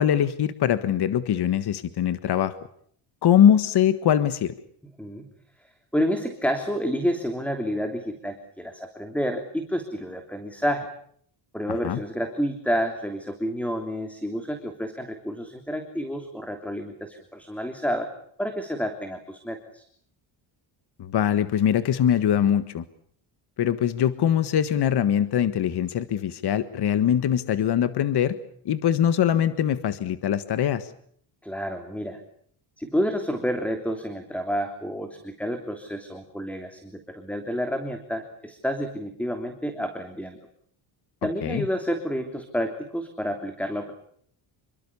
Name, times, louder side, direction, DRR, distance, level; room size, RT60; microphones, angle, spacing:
voice 1, 0.0-2.5 3.2-4.5 11.7-12.0 21.0-22.8 23.6-28.4 28.6-30.9 41.4-41.6, left 9 dB, 55° left, 12 dB, 1.6 m, -22 dB
voice 2, 5.9-10.9 11.5-18.1 18.4-19.8 31.4-32.2 32.8-40.4 41.2-43.9, equal, 5° left, 6 dB, 3.2 m, -29 dB
28.0 x 24.0 x 7.1 m, 0.63 s
cardioid pair, 130°, 47 cm